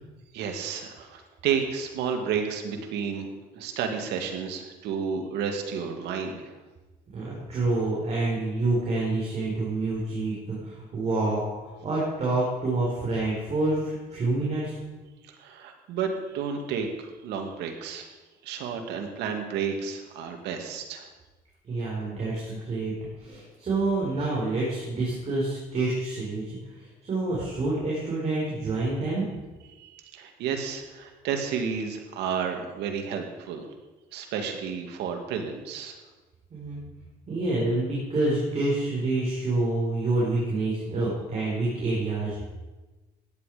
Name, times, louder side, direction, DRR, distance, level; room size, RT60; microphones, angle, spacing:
voice 1, 0.3-6.5 15.2-16.9 17.2-18.1 18.4-21.1 29.8-33.7 34.1-35.9, right 6 dB, 85° right, 4 dB, 2.3 m, -31 dB
voice 2, 7.1-14.8 21.6-22.9 23.2-29.2 36.5-36.8 37.3-42.4, right 2 dB, 40° right, -6 dB, 5.3 m, -27 dB
16.5 x 10.5 x 5.2 m, 1.2 s
cardioid pair, 110°, 17 cm